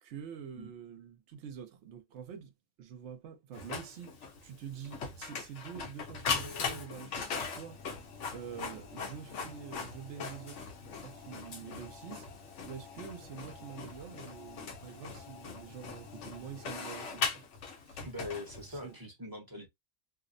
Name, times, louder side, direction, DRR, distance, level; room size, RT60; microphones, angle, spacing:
voice 1, 0.0-2.5 2.8-7.8 8.3-10.7 11.0-12.3 12.6-17.4 17.9-18.0 18.7-19.0, right 8 dB, 65° right, 0.9 m, -46 dB
Printer, 3.5-18.9, left 5 dB, 65° left, 1.0 m, -40 dB
voice 2, 18.0-19.7, left 2 dB, 20° right, 0.7 m, -42 dB
2.7 x 2.0 x 2.5 m
omnidirectional pair, 1.4 m